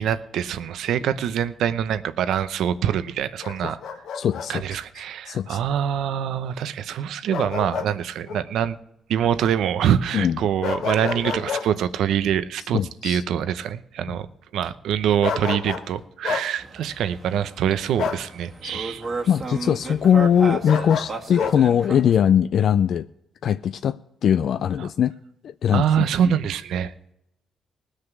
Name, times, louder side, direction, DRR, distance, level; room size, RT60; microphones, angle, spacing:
voice 1, 0.0-3.8 4.5-8.8 9.1-14.3 14.5-19.0 24.8-24.9 25.7-26.9, right 9 dB, 80° right, 0.7 m, -24 dB
Bark, 3.4-4.5 7.3-7.9 8.3-8.4 10.6-11.7 15.2-15.9 16.2-16.5 18.0-18.3 20.6-21.6, left 6 dB, 80° left, 1.4 m, -28 dB
voice 2, 4.1-4.8 5.3-5.6 10.1-10.4 12.7-13.2 18.6-18.7 19.3-23.1 23.4-25.1 25.4-26.1, left 9 dB, 65° left, 0.4 m, -21 dB
Car passes, 16.6-22.2, right 3 dB, 40° right, 1.6 m, -34 dB
19.5 x 6.6 x 6.0 m
cardioid pair, 90°, 0 cm